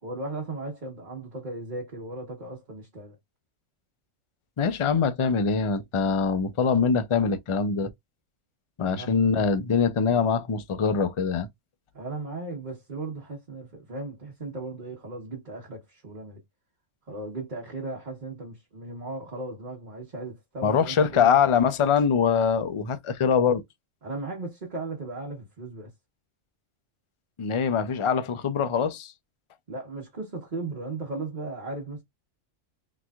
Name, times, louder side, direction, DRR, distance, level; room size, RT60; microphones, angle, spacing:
voice 1, 0.0-3.2 8.8-9.2 11.9-16.4 17.1-21.4 24.0-25.9 29.7-32.0, right 2 dB, 40° right, 1.2 m, -36 dB
voice 2, 4.6-7.9 8.8-11.5 20.6-23.6 27.4-29.1, left 6 dB, 50° left, 0.3 m, -23 dB
3.8 x 2.9 x 2.3 m
omnidirectional pair, 1.3 m